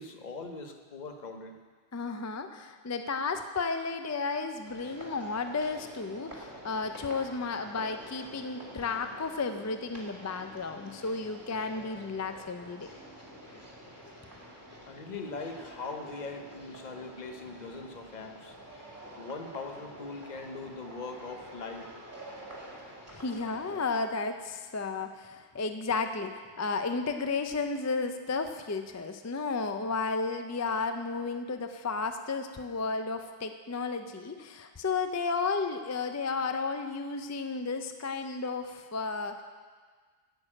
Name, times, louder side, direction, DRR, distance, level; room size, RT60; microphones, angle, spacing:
voice 1, 0.0-1.6 14.9-18.6 19.2-21.9, left 3 dB, 45° left, 5 dB, 1.0 m, -41 dB
voice 2, 1.9-12.9 23.1-39.4, left 4 dB, 25° left, 7 dB, 0.4 m, -33 dB
sound 1, 4.6-23.8, equal, 15° right, 2.1 m, -48 dB
9.2 x 6.8 x 8.6 m, 1.5 s
omnidirectional pair, 1.1 m